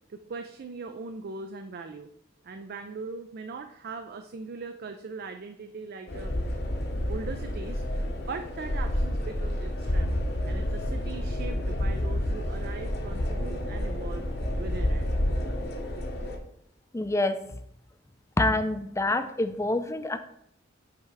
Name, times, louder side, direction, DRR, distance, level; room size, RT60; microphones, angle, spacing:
voice 1, 0.1-2.1 2.4-6.3 7.1-7.8 8.1-10.2 10.4-14.3 14.6-15.1, right 4 dB, 50° right, 8 dB, 0.4 m, -40 dB
sound 1, 6.1-16.4, left 1 dB, 55° left, 1.0 m, -29 dB
voice 2, 16.9-17.4 18.4-20.2, left 2 dB, 15° left, 8 dB, 0.5 m, -26 dB
8.1 x 3.3 x 4.8 m, 0.71 s
head